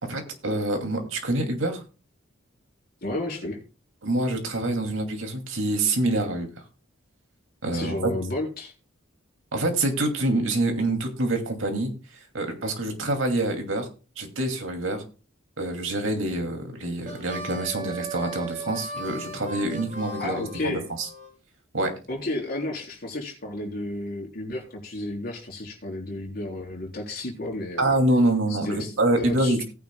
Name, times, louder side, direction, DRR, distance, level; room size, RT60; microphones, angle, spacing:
voice 1, 0.0-1.8 4.0-6.5 7.6-8.1 9.5-11.9 12.3-13.9 14.2-15.0 15.6-21.1 21.7-21.9 27.8-29.6, right 2 dB, 80° right, 4 dB, 2.5 m, -26 dB
voice 2, 3.0-3.6 7.7-8.7 20.2-20.8 22.1-28.0 28.5-28.9 29.2-29.6, left 2 dB, 50° left, 0 dB, 3.9 m, -32 dB
Harmonica, 17.0-21.3, right 2 dB, 40° right, 3.4 m, -37 dB
18.0 x 9.3 x 2.2 m, 0.34 s
head